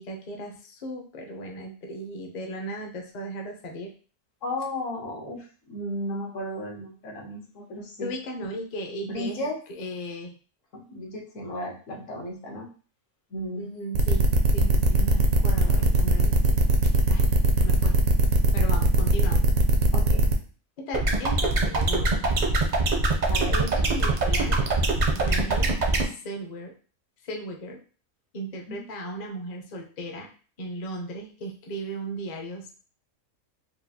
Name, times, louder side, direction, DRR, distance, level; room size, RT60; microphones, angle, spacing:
voice 1, 0.0-3.9 8.0-10.3 13.6-16.7 17.1-17.3 17.6-17.9 18.5-19.4 20.8-22.2 23.5-24.6 25.1-25.7 26.2-26.7 27.2-27.8 28.3-30.3 30.6-32.7, right 1 dB, 45° left, 2 dB, 0.5 m, -36 dB
voice 2, 4.4-5.4 5.7-8.1 9.0-9.6 10.7-12.7 13.3-13.6 19.9-20.3 23.3-23.6 28.7-28.8, left 1 dB, 70° left, 0 dB, 1.3 m, -34 dB
sound 1, 13.9-20.3, right 1 dB, 85° right, 1.0 m, -21 dB
sound 2, 20.9-26.0, right 3 dB, 50° right, 0.5 m, -23 dB
4.5 x 2.3 x 2.7 m, 0.39 s
omnidirectional pair, 1.4 m